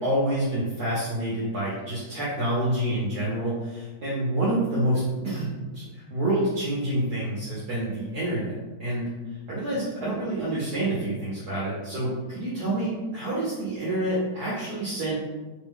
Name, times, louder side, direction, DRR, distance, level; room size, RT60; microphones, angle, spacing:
voice 1, 0.0-5.8 6.1-9.1 9.5-15.2, right 1 dB, 65° right, -8 dB, 1.1 m, -27 dB
3.4 x 2.2 x 3.5 m, 1.2 s
omnidirectional pair, 2.3 m